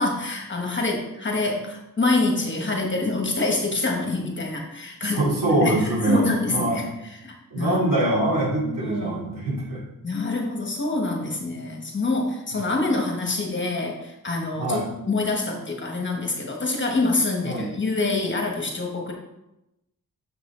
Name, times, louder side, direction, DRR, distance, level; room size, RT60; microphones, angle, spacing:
voice 1, 0.0-6.9 7.2-7.8 8.6-9.2 10.0-14.8 15.0-19.1, left 3 dB, 35° left, 1 dB, 1.4 m, -26 dB
voice 2, 5.0-6.9 7.5-9.8 12.5-12.6 14.5-14.9 17.4-17.7, right 2 dB, 80° right, -5 dB, 2.7 m, -24 dB
6.5 x 6.1 x 3.8 m, 0.90 s
wide cardioid pair, 110°, 34 cm